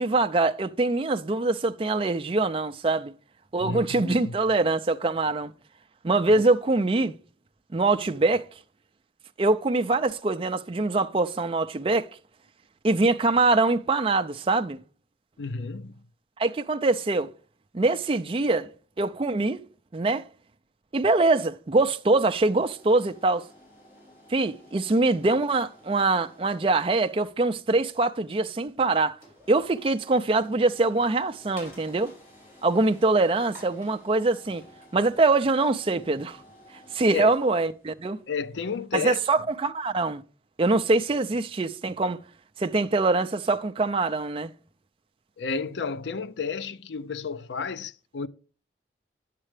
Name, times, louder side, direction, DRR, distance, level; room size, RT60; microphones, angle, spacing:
voice 1, 0.0-3.1 3.5-5.5 6.0-7.2 7.7-8.5 9.4-12.1 12.8-14.8 16.4-17.3 17.7-18.7 19.0-19.6 19.9-20.2 20.9-23.4 24.3-29.2 29.5-32.1 32.6-34.6 34.9-36.4 36.9-38.2 38.9-40.2 40.6-42.2 42.6-44.5, right 3 dB, 30° right, 0.4 m, -23 dB
voice 2, 3.6-4.3 6.3-6.4 15.4-16.0 37.1-37.3 38.3-39.2 45.4-48.3, left 5 dB, 80° left, 0.5 m, -32 dB
sound 1, 22.4-39.3, left 1 dB, 50° left, 5.3 m, -53 dB
9.9 x 7.5 x 3.3 m
head